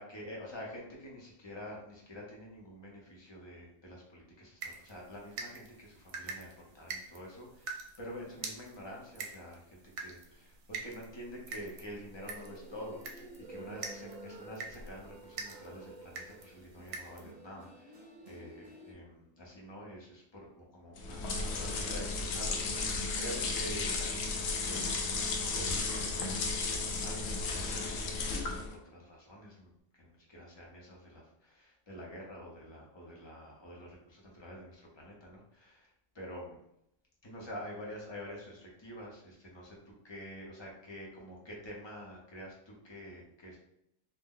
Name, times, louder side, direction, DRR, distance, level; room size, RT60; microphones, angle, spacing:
voice 1, 0.0-13.2 13.5-18.0 18.2-36.6 37.2-43.6, equal, 30° left, -3 dB, 0.6 m, -47 dB
sound 1, 4.6-17.3, right 4 dB, 70° right, 0.9 m, -46 dB
sound 2, 12.1-18.9, right 2 dB, 40° right, 0.6 m, -51 dB
sound 3, 21.0-28.8, left 3 dB, 65° left, 0.8 m, -34 dB
2.6 x 2.1 x 3.6 m, 0.77 s
omnidirectional pair, 1.3 m